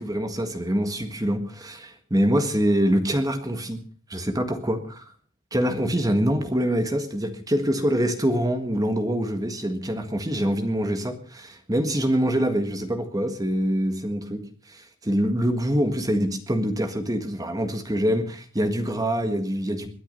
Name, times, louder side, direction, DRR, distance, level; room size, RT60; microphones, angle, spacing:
voice 1, 0.0-3.8 4.1-4.8 5.5-14.4 14.7-19.9, equal, 15° right, 8 dB, 1.6 m, -25 dB
21.5 x 9.9 x 5.4 m, 0.43 s
head